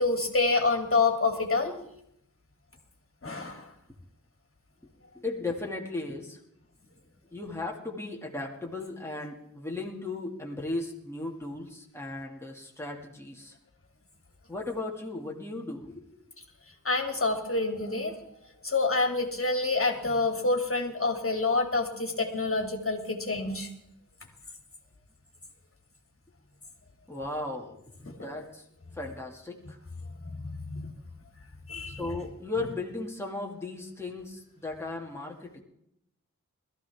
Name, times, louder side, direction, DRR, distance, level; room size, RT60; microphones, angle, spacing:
voice 1, 0.0-1.7 3.2-3.7 16.8-18.1 18.6-23.7 28.1-28.2 30.2-30.9 31.7-32.0, left 3 dB, 45° left, 3 dB, 2.4 m, -27 dB
voice 2, 5.1-6.4 7.3-13.6 14.5-16.1 27.1-27.8 28.1-28.6 28.9-29.8 31.9-35.6, left 2 dB, 10° left, -1 dB, 2.3 m, -36 dB
21.0 x 14.0 x 3.6 m, 0.75 s
wide cardioid pair, 65°, 30 cm